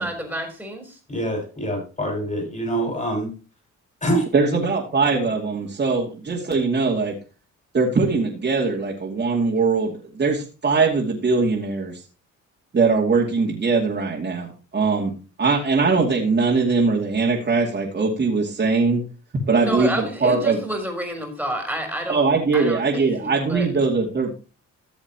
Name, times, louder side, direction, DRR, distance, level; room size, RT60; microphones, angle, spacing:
voice 1, 0.0-1.0 19.6-22.3 22.5-23.7, equal, ahead, 2 dB, 3.7 m, -29 dB
voice 2, 1.1-3.3 4.0-4.2, right 1 dB, 25° left, 2 dB, 6.1 m, -25 dB
voice 3, 4.3-7.1 7.7-12.0 12.7-15.1 15.4-19.0 19.5-20.6 22.1-24.3, right 4 dB, 35° right, -3 dB, 2.6 m, -21 dB
14.5 x 7.1 x 3.0 m, 0.33 s
cardioid pair, 90°, 30 cm